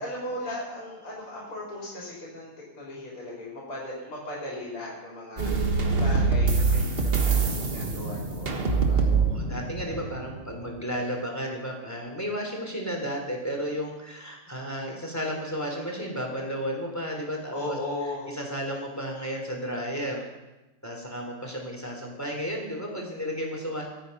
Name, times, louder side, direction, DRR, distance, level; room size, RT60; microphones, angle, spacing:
voice 1, 0.0-5.5 5.9-9.1 9.9-10.1 17.5-18.3, left 1 dB, 75° left, -6 dB, 5.1 m, -37 dB
voice 2, 5.4-6.0 8.9-17.8 18.3-20.3 20.8-23.9, equal, 5° left, 0 dB, 3.2 m, -33 dB
sound 1, 5.4-10.9, right 4 dB, 30° right, 1.2 m, -25 dB
22.5 x 9.1 x 5.5 m, 1.0 s
omnidirectional pair, 2.4 m